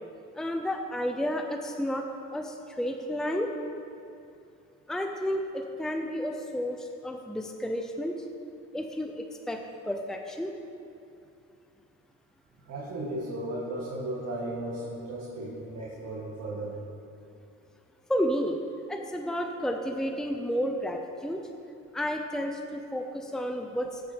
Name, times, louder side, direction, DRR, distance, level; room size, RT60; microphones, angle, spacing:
voice 1, 0.3-2.1 2.3-3.5 4.9-8.2 8.7-9.6 9.8-10.5 18.1-18.6 18.9-21.5 21.9-24.0, equal, ahead, 3 dB, 0.8 m, -31 dB
voice 2, 12.7-16.8 23.8-23.9, right 1 dB, 60° right, -5 dB, 2.0 m, -35 dB
15.0 x 6.2 x 5.2 m, 2.6 s
cardioid pair, 90°, 30 cm